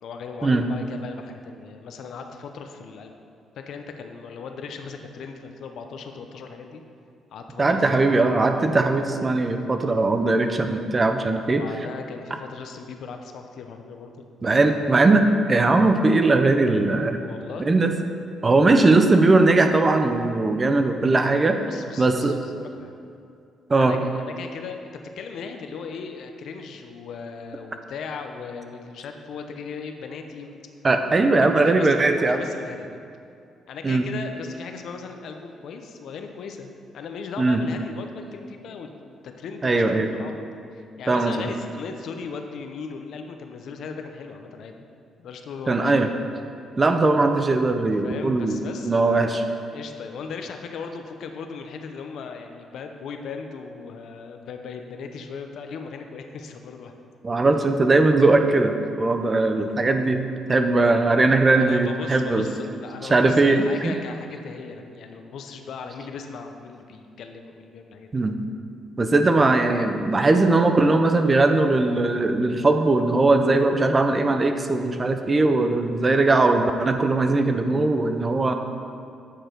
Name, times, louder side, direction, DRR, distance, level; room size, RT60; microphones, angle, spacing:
voice 1, 0.0-3.1 3.7-6.8 7.3-8.1 11.4-14.1 14.6-14.7 17.2-17.7 21.6-22.9 23.8-30.6 31.4-33.0 33.7-40.4 40.7-44.8 45.2-46.0 48.0-56.9 61.5-68.1, left 5 dB, 70° left, 5 dB, 0.7 m, -38 dB
voice 2, 7.6-11.6 14.4-17.2 17.6-17.9 18.4-21.6 22.0-22.4 23.7-24.0 30.8-32.4 33.8-34.1 37.4-37.6 39.6-40.1 41.1-41.3 45.7-46.1 46.8-49.4 57.2-62.5 63.1-64.0 68.1-68.4 69.0-78.5, right 2 dB, 30° right, 6 dB, 0.6 m, -19 dB
8.7 x 4.9 x 4.5 m, 2.4 s
cardioid pair, 90°, 0 cm